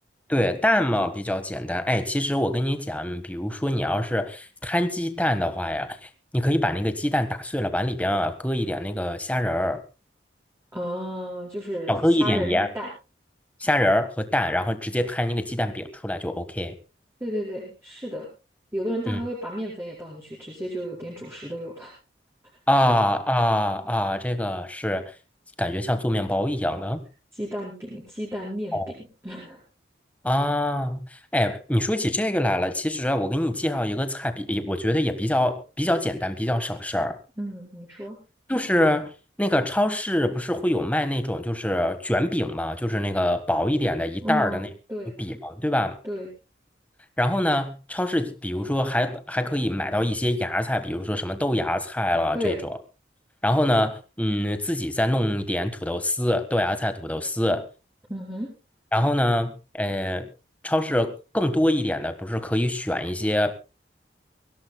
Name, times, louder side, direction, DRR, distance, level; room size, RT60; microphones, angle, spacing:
voice 1, 0.3-6.0 6.3-9.8 11.9-12.7 13.6-16.7 19.1-19.2 22.7-25.1 25.6-27.0 28.7-28.9 30.2-31.0 31.3-37.2 38.5-39.1 39.4-44.7 45.2-46.0 47.2-52.6 53.4-57.7 58.9-60.3 60.6-63.5, left 1 dB, 10° left, 9 dB, 1.4 m, -24 dB
voice 2, 10.7-11.9 12.2-12.9 17.2-18.3 18.7-21.9 27.3-28.9 29.2-29.6 37.4-38.2 44.2-45.1 46.0-46.3 52.3-52.6 58.1-58.5, equal, 15° right, -5 dB, 4.8 m, -32 dB
24.0 x 16.5 x 2.2 m, 0.31 s
head